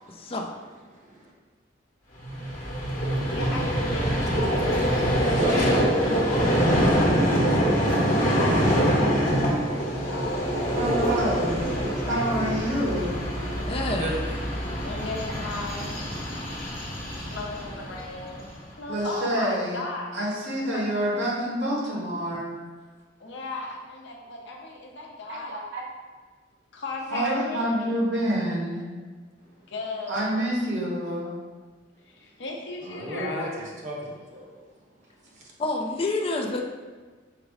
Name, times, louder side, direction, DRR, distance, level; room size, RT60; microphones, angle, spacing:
voice 1, 0.2-0.5 8.7-8.9 13.6-14.4 35.6-36.6, left 2 dB, 30° left, 2 dB, 0.4 m, -28 dB
voice 2, 0.9-1.3 5.2-5.9 13.9-14.1 32.8-34.5, right 1 dB, 40° right, -2 dB, 0.9 m, -33 dB
Vehicle, 2.2-18.5, equal, 45° left, 1.0 m, -25 dB
voice 3, 3.3-5.4 5.8-6.9 8.3-10.7 11.1-12.4 14.8-15.9 17.3-18.5 18.8-20.1 20.7-20.8 23.2-25.5 26.7-27.7 29.4-30.2 32.1-33.5, left 2 dB, 70° left, -1 dB, 0.8 m, -37 dB
voice 4, 10.7-11.6 12.1-13.2 18.9-19.8 20.1-22.6 25.3-25.8 27.1-28.8 30.1-31.3, right 1 dB, 65° right, -5 dB, 1.3 m, -27 dB
5.0 x 2.0 x 4.7 m, 1.4 s
head